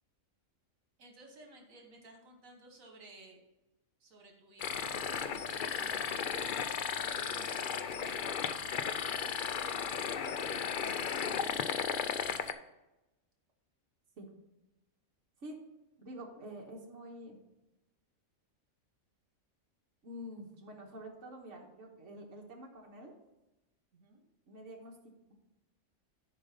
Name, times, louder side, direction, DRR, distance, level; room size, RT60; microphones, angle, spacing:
voice 1, 1.0-3.4 4.0-5.0 5.3-8.2 8.7-10.0 10.8-12.5 23.9-24.3, right 2 dB, 80° right, 1 dB, 1.9 m, -55 dB
sound 1, 4.6-12.5, left 7 dB, 55° left, 0.6 m, -35 dB
voice 2, 16.0-17.4 20.0-23.1 24.5-25.0, equal, 65° right, -1 dB, 1.7 m, -47 dB
10.5 x 5.2 x 5.3 m, 0.97 s
omnidirectional pair, 1.4 m